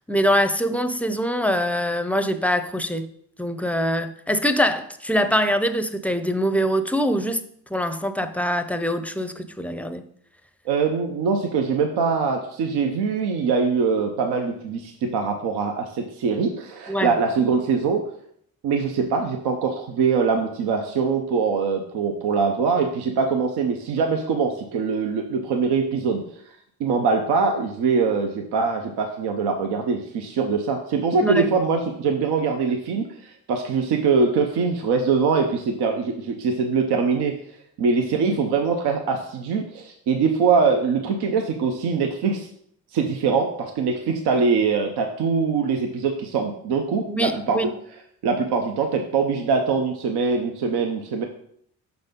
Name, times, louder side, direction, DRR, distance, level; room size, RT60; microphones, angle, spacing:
voice 1, 0.1-3.1 3.4-7.4 7.7-10.1 16.9-17.1 31.2-31.5 47.1-47.7, equal, 5° left, 9 dB, 0.4 m, -23 dB
voice 2, 10.7-18.0 18.6-26.2 26.8-37.4 37.8-42.5 42.9-47.7 48.2-51.3, right 5 dB, 85° right, 4 dB, 0.8 m, -23 dB
5.7 x 4.1 x 5.1 m, 0.67 s
cardioid pair, 75°, 38 cm